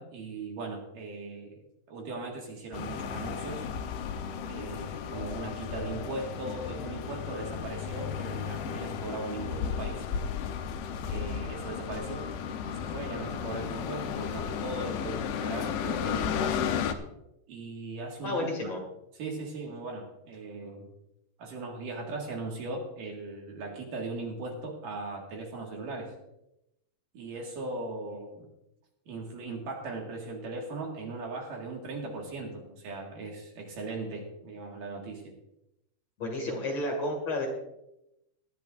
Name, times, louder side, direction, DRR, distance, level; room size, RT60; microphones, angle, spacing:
voice 1, 0.0-1.6 1.9-3.7 4.5-10.1 11.0-12.2 12.7-16.7 17.5-18.6 19.1-20.9 21.4-26.1 27.1-28.5 29.1-35.3, right 3 dB, 60° right, 0 dB, 3.2 m, -38 dB
sound 1, 2.7-16.9, left 7 dB, 75° left, 2.5 m, -34 dB
voice 2, 18.2-18.8 36.2-37.5, left 2 dB, 45° left, 1 dB, 2.9 m, -31 dB
19.5 x 12.5 x 2.6 m, 0.85 s
omnidirectional pair, 4.7 m